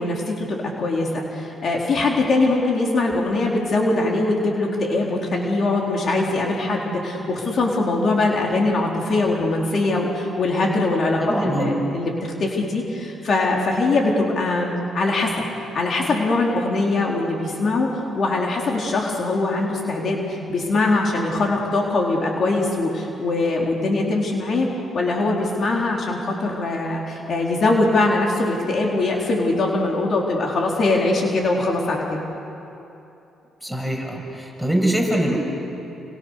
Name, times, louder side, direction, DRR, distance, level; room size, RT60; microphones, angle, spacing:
voice 1, 0.0-15.3 15.7-24.7 24.9-32.2, left 2 dB, 50° left, -1 dB, 4.3 m, -22 dB
voice 2, 11.2-11.7 33.6-35.4, right 1 dB, 5° left, 0 dB, 6.5 m, -23 dB
29.5 x 26.0 x 6.7 m, 2.9 s
cardioid pair, 90°, 0 cm